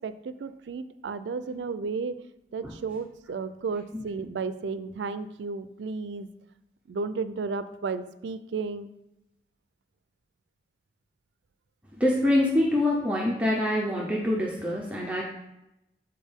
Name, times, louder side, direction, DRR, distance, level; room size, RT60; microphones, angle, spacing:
voice 1, 0.0-2.2 2.5-6.3 6.9-8.9, right 4 dB, 85° right, 13 dB, 0.4 m, -33 dB
voice 2, 11.9-15.2, left 1 dB, 10° right, -3 dB, 0.6 m, -25 dB
7.2 x 4.3 x 3.5 m, 0.88 s
head